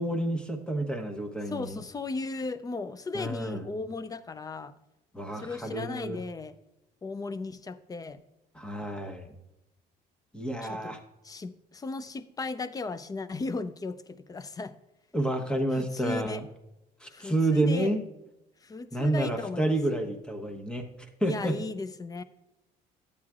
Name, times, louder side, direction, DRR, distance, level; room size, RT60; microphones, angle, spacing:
voice 1, 0.0-1.8 3.1-3.6 5.1-6.2 8.5-9.3 10.3-11.0 15.1-16.4 17.0-18.0 18.9-20.9 21.2-21.6, right 1 dB, 5° left, 4 dB, 1.0 m, -29 dB
voice 2, 1.5-4.7 5.3-6.6 7.0-8.2 10.6-10.9 11.2-14.8 15.7-16.5 17.1-17.9 18.6-20.0 21.2-22.2, left 3 dB, 20° left, 14 dB, 0.5 m, -36 dB
12.0 x 8.7 x 2.4 m, 0.95 s
cardioid pair, 110°, 17 cm